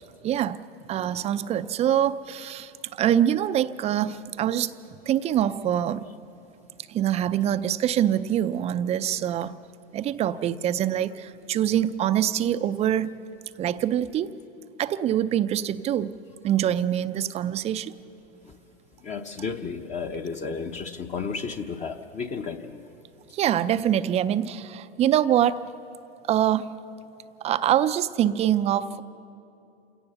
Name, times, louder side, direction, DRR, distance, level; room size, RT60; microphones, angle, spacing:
voice 1, 0.2-0.6 0.9-2.7 3.0-4.7 5.1-6.1 6.9-9.6 9.9-13.1 13.6-14.3 14.8-16.1 16.4-17.9 23.3-25.7 26.3-26.8 27.4-29.0, right 10 dB, 20° right, 13 dB, 0.5 m, -24 dB
voice 2, 19.0-22.9, left 5 dB, 20° left, 5 dB, 0.8 m, -33 dB
28.0 x 17.5 x 6.9 m, 2.8 s
hypercardioid pair, 115°, 32 cm